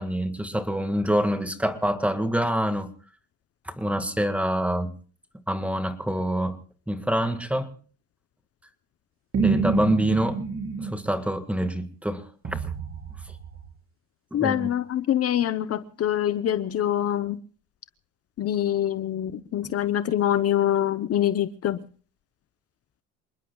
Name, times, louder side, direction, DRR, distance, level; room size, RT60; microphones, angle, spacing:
voice 1, 0.0-2.9 3.7-4.9 5.5-6.6 6.9-7.7 9.4-10.4 10.8-12.6 14.3-14.7 19.6-19.7, right 1 dB, 5° right, 1.8 m, -26 dB
sound 1, 9.3-11.0 12.4-13.7, right 4 dB, 40° right, 3.9 m, -27 dB
voice 2, 14.3-17.4 18.4-21.8, left 11 dB, 45° left, 0.8 m, -25 dB
28.0 x 20.5 x 2.3 m
cardioid pair, 110°, 33 cm